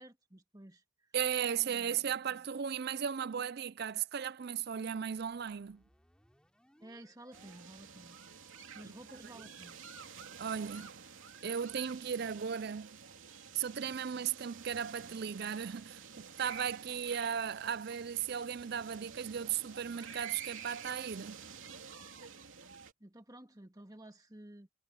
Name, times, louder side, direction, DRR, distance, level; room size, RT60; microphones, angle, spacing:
voice 1, 0.0-1.1 1.6-2.4 6.8-8.2 8.7-9.8 23.0-24.7, right 1 dB, 15° right, 1.8 m, -53 dB
voice 2, 1.1-5.8 10.4-10.9 11.4-13.0 13.5-21.4, right 8 dB, 50° right, 0.4 m, -36 dB
sound 1, 5.0-8.9, equal, 5° left, 7.4 m, -68 dB
sound 2, 7.3-22.9, right 6 dB, 70° right, 3.1 m, -50 dB
head